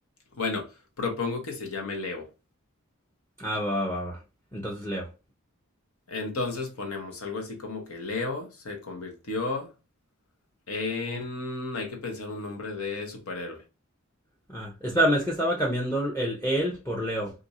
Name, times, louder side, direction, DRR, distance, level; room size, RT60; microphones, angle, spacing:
voice 1, 0.4-0.7 1.0-2.3 6.1-9.7 10.7-13.6, left 3 dB, 80° left, 1.0 m, -33 dB
voice 2, 3.4-4.2 4.5-5.1 11.0-11.2 14.5-17.3, equal, 10° left, 0.6 m, -27 dB
2.6 x 2.5 x 4.1 m
head